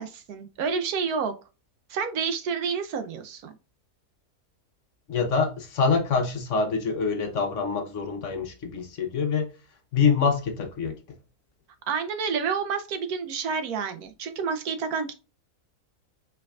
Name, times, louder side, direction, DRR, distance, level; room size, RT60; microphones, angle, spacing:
voice 1, 0.0-1.3 1.9-3.5 11.9-15.1, right 6 dB, 75° right, 1.1 m, -29 dB
voice 2, 5.1-9.5 9.9-11.0, left 5 dB, 55° left, 1.2 m, -25 dB
4.8 x 4.6 x 2.3 m
omnidirectional pair, 1.6 m